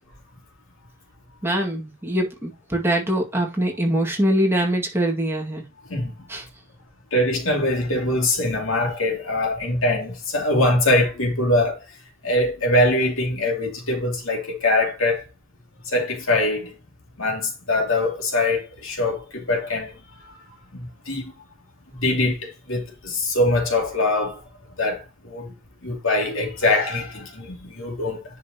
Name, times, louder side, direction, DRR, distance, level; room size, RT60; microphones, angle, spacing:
voice 1, 1.4-5.6 6.3-6.5, right 1 dB, 10° right, 2.0 m, -23 dB
voice 2, 7.1-11.8 12.2-15.2 15.9-16.7 17.2-19.9 20.7-21.3 21.9-24.4 24.8-25.5 25.8-28.2, left 1 dB, 75° left, 2.5 m, -23 dB
10.0 x 5.3 x 2.9 m
head